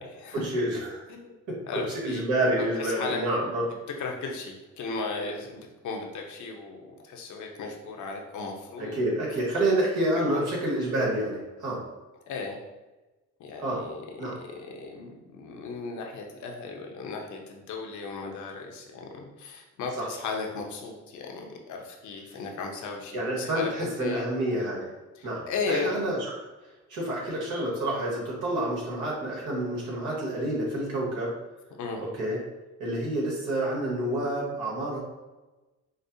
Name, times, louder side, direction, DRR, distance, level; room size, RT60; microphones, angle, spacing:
voice 1, 0.3-1.0 1.5-3.6 8.8-11.8 13.6-13.8 14.2-14.4 20.0-20.1 23.1-24.9 25.2-26.2 26.9-31.3 32.2-32.4 32.8-35.0, right 1 dB, 90° right, -4 dB, 1.4 m, -28 dB
voice 2, 1.7-2.2 2.8-3.2 4.0-9.0 10.2-10.4 12.3-12.6 13.4-24.3 25.2-25.9 31.7-32.0, left 4 dB, 75° left, 2 dB, 0.7 m, -36 dB
5.1 x 2.0 x 2.6 m, 1.1 s
cardioid pair, 90°, 30 cm